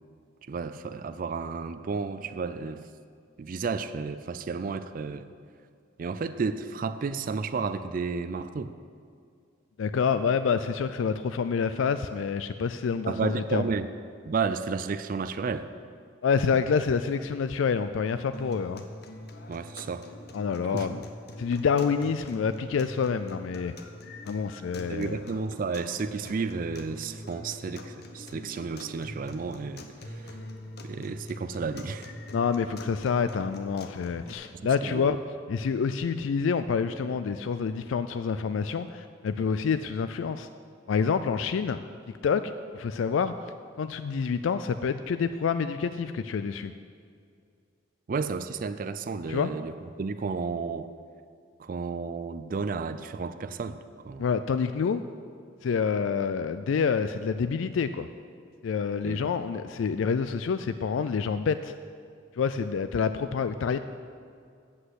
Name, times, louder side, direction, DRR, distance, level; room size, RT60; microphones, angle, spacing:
voice 1, 0.4-2.8 3.4-5.3 6.0-8.7 13.1-13.9 14.3-15.7 19.5-20.1 20.7-21.0 24.9-30.4 30.8-32.1 34.5-35.2 48.1-50.9 51.6-53.8 54.0-54.2 59.0-59.3, right 4 dB, 45° right, 12 dB, 0.4 m, -32 dB
voice 2, 9.8-13.7 16.2-18.8 20.3-21.0 21.4-23.7 24.3-25.2 32.3-35.2 35.5-40.5 40.9-41.8 42.2-43.3 43.8-46.7 49.3-49.5 54.2-55.0 55.6-58.1 58.6-61.7 62.4-63.8, left 6 dB, 85° left, 11 dB, 0.4 m, -27 dB
sound 1, 18.3-34.3, left 1 dB, 55° left, 0.9 m, -44 dB
8.4 x 7.7 x 7.9 m, 2.3 s
head